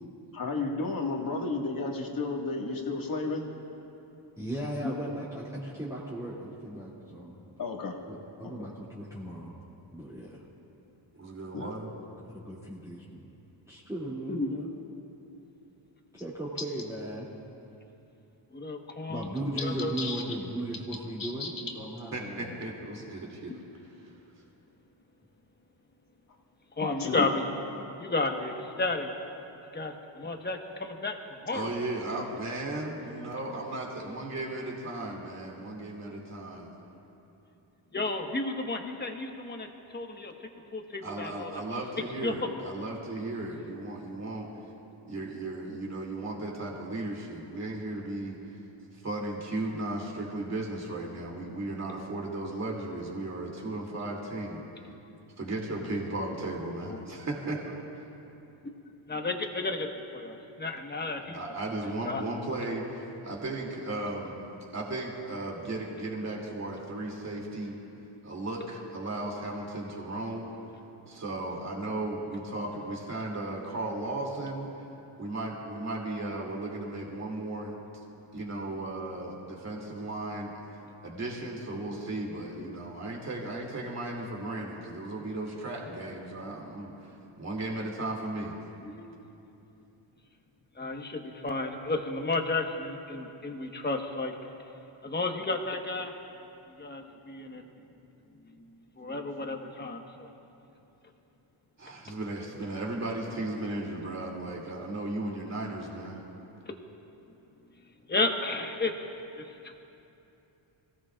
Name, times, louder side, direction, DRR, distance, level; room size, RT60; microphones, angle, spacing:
voice 1, 0.3-3.5 7.6-8.0 8.4-8.7 11.5-11.8 20.0-20.8 21.2-21.5 26.8-27.3, left 3 dB, 45° left, 0 dB, 1.9 m, -33 dB
voice 2, 4.4-7.4 8.1-9.5 9.9-10.4 12.2-13.3 13.6-14.7 16.1-17.3 19.1-22.6, right 1 dB, 5° right, -10 dB, 2.7 m, -37 dB
voice 3, 11.1-11.9 22.1-23.5 31.5-36.7 41.0-44.5 45.0-48.4 49.0-54.6 55.4-57.8 61.2-64.4 64.7-67.8 68.2-70.5 71.1-74.7 75.2-77.8 78.3-80.5 81.0-86.9 87.4-88.6 101.8-106.2, right 2 dB, 35° right, -2 dB, 2.8 m, -35 dB
voice 4, 18.5-19.3 19.6-20.1 26.8-27.5 28.0-29.1 29.7-31.7 37.9-40.3 40.7-41.8 42.2-42.5 56.9-57.0 59.1-61.6 62.0-62.2 82.5-82.6 88.8-89.1 90.7-94.3 95.0-96.2 96.8-97.7 99.0-100.3 106.7-106.8 108.1-109.8, left 3 dB, 20° left, 3 dB, 1.4 m, -32 dB
26.5 x 17.0 x 2.5 m, 2.9 s
cardioid pair, 110°, 49 cm